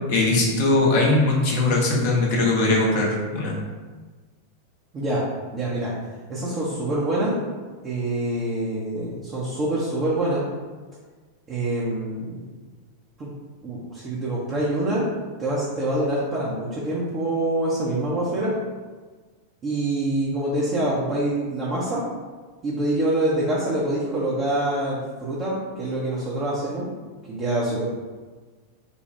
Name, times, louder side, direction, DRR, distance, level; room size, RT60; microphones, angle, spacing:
voice 1, 0.1-3.6, left 2 dB, 50° left, -2 dB, 0.9 m, -20 dB
voice 2, 5.5-5.9 6.3-7.4 7.8-10.4 11.5-12.5 13.2-13.3 13.6-15.1 15.4-18.5 19.6-22.0 22.6-26.9 27.3-27.8, right 1 dB, 25° right, -6 dB, 0.8 m, -25 dB
4.3 x 2.3 x 3.3 m, 1.4 s
figure-of-eight pair, 90°, 0 cm